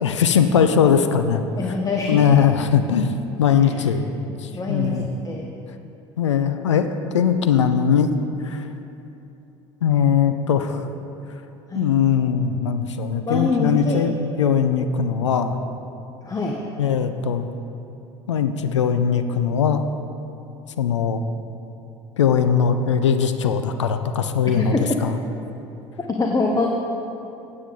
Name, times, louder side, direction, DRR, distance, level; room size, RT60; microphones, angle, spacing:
voice 1, 0.0-1.4 2.1-3.1 3.4-4.0 4.4-5.1 6.2-6.9 7.1-8.1 8.4-8.6 9.8-10.8 11.7-15.6 16.8-17.5 18.3-19.8 20.8-21.2 22.2-24.7 25.0-25.1, left 7 dB, 85° left, 9 dB, 0.5 m, -20 dB
voice 2, 1.6-2.4 3.6-3.9 4.3-5.5 11.7-11.9 13.3-14.0 16.2-16.6 24.6-24.8 26.1-26.8, left 3 dB, 25° left, 1 dB, 0.9 m, -24 dB
9.1 x 8.5 x 3.8 m, 2.9 s
hypercardioid pair, 65°, 15 cm